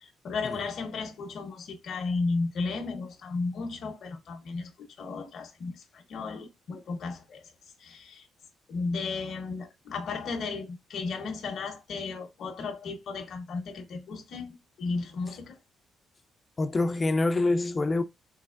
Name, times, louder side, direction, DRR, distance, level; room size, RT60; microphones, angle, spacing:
voice 1, 0.0-4.7 5.0-7.4 7.8-8.3 8.7-15.6, left 4 dB, 65° left, 0.8 m, -34 dB
voice 2, 16.6-18.0, left 2 dB, 30° left, 0.4 m, -26 dB
3.3 x 3.0 x 2.5 m
cardioid pair, 90°, 0 cm